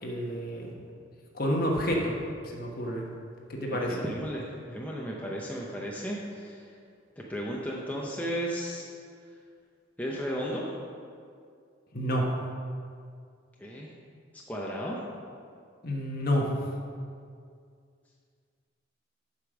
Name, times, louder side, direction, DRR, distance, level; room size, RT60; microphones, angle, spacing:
voice 1, 0.0-0.7 1.3-2.2 2.5-3.1 3.5-4.0 11.9-12.3 15.8-16.5, equal, 45° left, -1 dB, 1.2 m, -29 dB
voice 2, 3.7-6.6 7.2-8.8 10.0-10.6 13.6-13.9 14.5-15.0, equal, 10° left, -4 dB, 0.7 m, -34 dB
8.2 x 5.1 x 6.1 m, 2.2 s
head